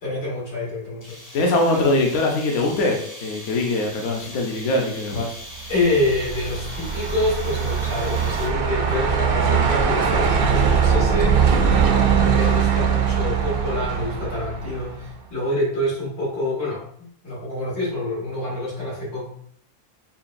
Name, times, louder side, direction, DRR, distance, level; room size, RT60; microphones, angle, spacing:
voice 1, 0.0-1.2 1.7-1.9 5.7-11.5 12.2-19.3, left 1 dB, 85° left, -6 dB, 2.1 m, -26 dB
sound 1, 1.0-8.7, equal, 20° left, 0.5 m, -40 dB
voice 2, 1.3-5.3, left 2 dB, 60° left, 1 dB, 0.9 m, -22 dB
Truck, 5.7-15.1, right 6 dB, 85° right, 0.5 m, -21 dB
5.6 x 2.2 x 2.5 m, 0.65 s
omnidirectional pair, 1.6 m